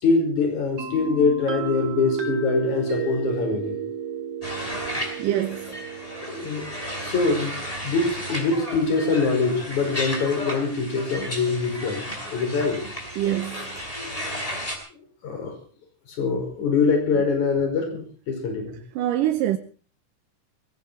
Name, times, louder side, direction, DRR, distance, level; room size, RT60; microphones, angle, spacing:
voice 1, 0.0-3.8 6.3-6.7 7.0-7.6 7.8-12.8 15.2-15.5 16.1-18.8, left 4 dB, 65° left, 6.6 m, -24 dB
sound 1, 0.8-8.4, right 6 dB, 45° right, 2.9 m, -32 dB
sound 2, 4.4-14.8, equal, 10° left, 4.7 m, -34 dB
voice 2, 5.2-5.7 13.2-13.7 19.0-19.6, right 12 dB, 85° right, 2.6 m, -24 dB
20.5 x 17.0 x 4.2 m
omnidirectional pair, 3.7 m